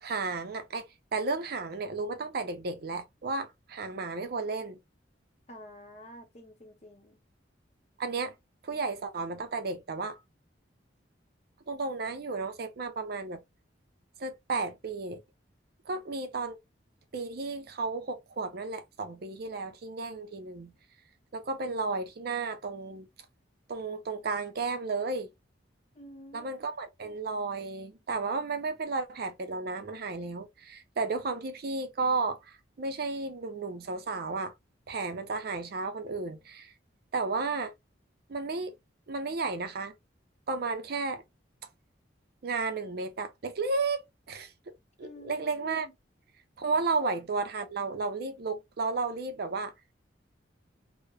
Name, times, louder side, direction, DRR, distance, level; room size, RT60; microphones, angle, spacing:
voice 1, 0.0-0.9 1.1-4.8 8.0-8.3 8.6-10.2 11.7-13.4 14.2-15.2 15.9-16.6 17.1-20.7 21.3-23.1 23.7-25.3 26.3-34.5 34.9-36.7 37.1-37.7 38.3-38.7 39.1-39.9 40.5-41.2 42.4-44.5 45.0-45.9 46.6-49.7, right 3 dB, 55° right, 0.5 m, -33 dB
voice 2, 5.5-7.2 25.9-26.6 45.0-45.9 47.0-47.1, equal, 35° left, 0.7 m, -49 dB
2.9 x 2.0 x 2.2 m
head